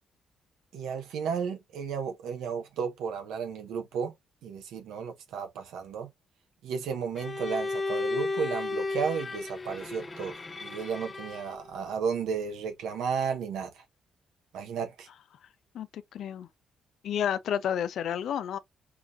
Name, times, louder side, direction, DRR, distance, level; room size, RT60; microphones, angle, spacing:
voice 1, 0.7-4.1 4.4-6.1 6.6-10.3 10.6-13.8 14.5-15.1, right 6 dB, 85° right, 1.1 m, -33 dB
Bowed string instrument, 7.2-11.7, left 3 dB, 25° left, 0.7 m, -34 dB
voice 2, 15.7-16.5 17.0-18.6, left 9 dB, 70° left, 0.5 m, -31 dB
4.7 x 2.4 x 2.6 m
cardioid pair, 90°, 0 cm